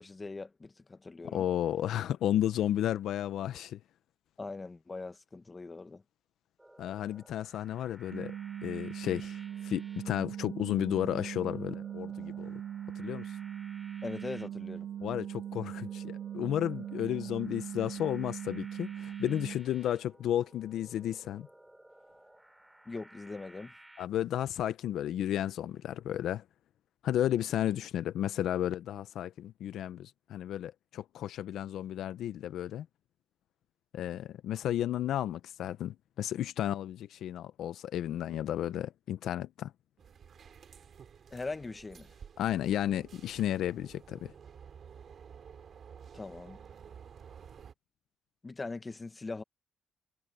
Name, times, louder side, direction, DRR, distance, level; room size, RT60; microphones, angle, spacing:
voice 1, 0.0-1.5 4.4-6.0 14.0-14.9 22.8-23.7 41.3-42.2 46.1-46.6 48.4-49.4, left 3 dB, 25° left, 1.4 m, -41 dB
voice 2, 1.3-3.8 6.8-8.3 8.6-12.5 13.0-13.3 15.0-21.5 24.0-26.4 27.0-32.9 33.9-39.7 42.4-44.3, left 11 dB, 75° left, 0.7 m, -33 dB
sound 1, 6.6-24.1, right 1 dB, 10° right, 5.3 m, -57 dB
sound 2, 8.1-19.6, right 10 dB, 80° right, 1.3 m, -40 dB
sound 3, 40.0-47.7, right 7 dB, 55° right, 2.8 m, -52 dB
cardioid pair, 90°, 0 cm